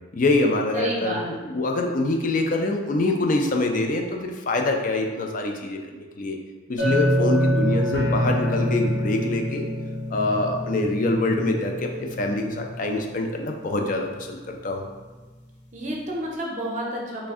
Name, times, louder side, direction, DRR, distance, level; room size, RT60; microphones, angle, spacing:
voice 1, 0.1-6.4 6.7-9.7 10.1-14.9, left 2 dB, 45° left, 3 dB, 0.4 m, -25 dB
voice 2, 0.7-1.5 15.7-17.3, right 1 dB, 40° right, -2 dB, 0.6 m, -30 dB
Chink clink, 6.8-11.0, left 1 dB, 85° left, 1.4 m, -31 dB
sound 1, 6.8-13.7 14.0-14.5 14.9-15.0, equal, 60° left, 1.1 m, -27 dB
3.2 x 2.5 x 3.5 m, 1.3 s
head